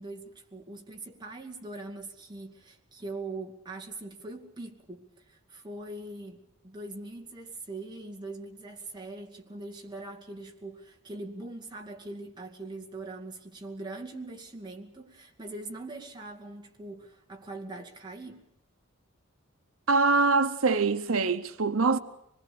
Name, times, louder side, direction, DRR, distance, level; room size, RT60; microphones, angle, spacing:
voice 1, 0.0-18.5, right 2 dB, 20° right, 2.4 m, -42 dB
voice 2, 19.9-22.0, right 4 dB, 85° right, 0.9 m, -24 dB
25.5 x 21.0 x 6.9 m
head